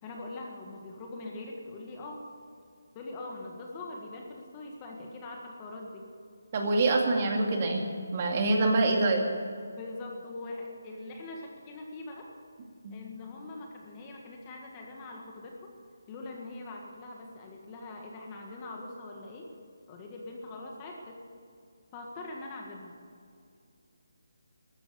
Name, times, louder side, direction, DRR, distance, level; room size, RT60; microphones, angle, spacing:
voice 1, 0.0-2.2 3.0-6.1 9.8-12.3 12.9-15.7 16.1-19.5 19.9-21.2 21.9-23.0, left 2 dB, 20° left, 0 dB, 1.7 m, -42 dB
voice 2, 6.5-7.8 8.1-9.2 12.8-12.9, right 2 dB, 30° right, 2 dB, 2.2 m, -25 dB
14.5 x 12.5 x 6.9 m, 2.3 s
hypercardioid pair, 170°, 0 cm